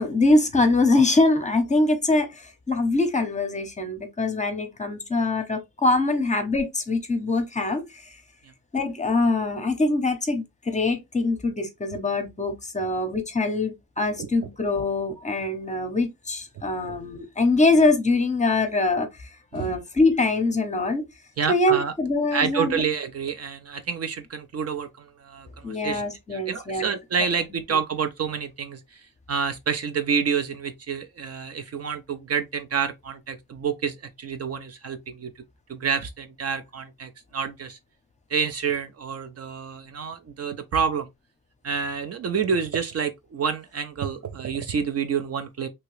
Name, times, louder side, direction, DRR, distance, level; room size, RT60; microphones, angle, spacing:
voice 1, 0.0-8.0 8.7-21.0 21.5-22.8 25.6-26.9, left 2 dB, 20° left, 0.7 m, -23 dB
voice 2, 21.4-21.9 22.3-26.0 26.3-29.0 29.3-35.3 35.7-37.8 38.3-41.1 41.6-45.7, right 6 dB, 45° right, 0.5 m, -28 dB
2.8 x 2.8 x 3.1 m
wide cardioid pair, 130°, 34 cm